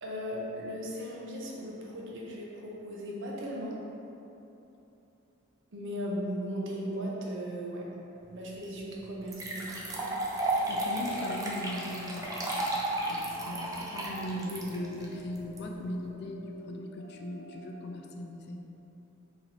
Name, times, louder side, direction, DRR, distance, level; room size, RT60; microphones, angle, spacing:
voice 1, 0.0-3.8 5.7-7.8 8.3-10.0, equal, 65° right, -3 dB, 0.7 m, -37 dB
sound 1, 8.6-8.7 9.3-15.6, right 1 dB, 15° right, 0.4 m, -33 dB
sound 2, 10.5-18.2, left 1 dB, 70° left, 1.0 m, -53 dB
voice 2, 10.7-12.7 13.1-18.6, left 1 dB, 55° left, 2 dB, 0.3 m, -39 dB
4.0 x 3.0 x 2.9 m, 3.0 s
head